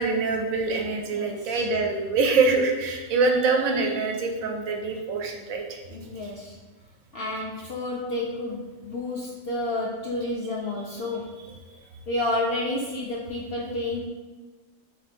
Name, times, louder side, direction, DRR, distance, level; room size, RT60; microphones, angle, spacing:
voice 1, 0.0-5.8, right 3 dB, 80° right, 2 dB, 1.0 m, -24 dB
voice 2, 1.1-1.6 5.9-6.6 7.1-11.4 12.1-14.1, left 2 dB, 65° left, -3 dB, 0.6 m, -30 dB
3.3 x 2.9 x 4.2 m, 1.3 s
omnidirectional pair, 1.5 m